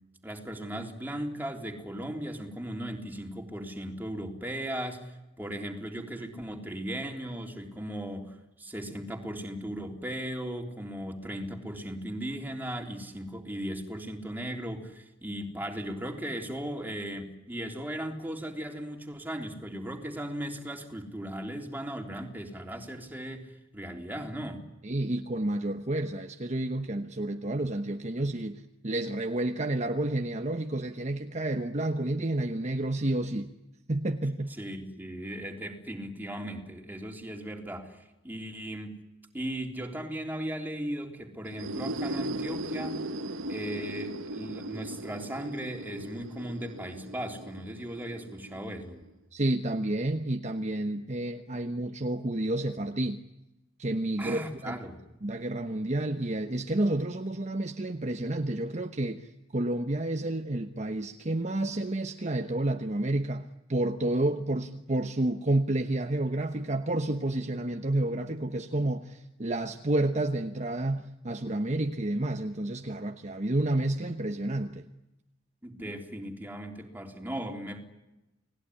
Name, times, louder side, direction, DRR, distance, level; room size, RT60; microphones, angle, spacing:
voice 1, 0.2-24.6 34.5-39.0 39.3-43.0 43.5-49.0 54.2-55.0 75.6-77.8, right 1 dB, 10° right, 3.5 m, -37 dB
voice 2, 24.8-33.5 33.9-34.6 49.3-53.2 53.8-54.8 55.2-74.8 75.8-75.9, right 1 dB, 35° right, 1.1 m, -30 dB
sound 1, 41.4-49.1, right 1 dB, 75° right, 1.3 m, -38 dB
30.0 x 19.5 x 10.0 m
head